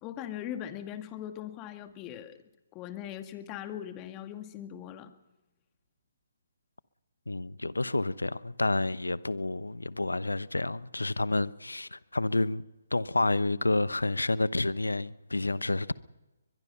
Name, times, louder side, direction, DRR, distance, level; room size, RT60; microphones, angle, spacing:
voice 1, 0.0-2.4 2.7-5.1, left 10 dB, 25° left, 2.0 m, -40 dB
voice 2, 7.3-12.6 12.9-15.9, left 2 dB, 85° left, 0.9 m, -29 dB
22.5 x 22.0 x 5.7 m
figure-of-eight pair, 140°, 0 cm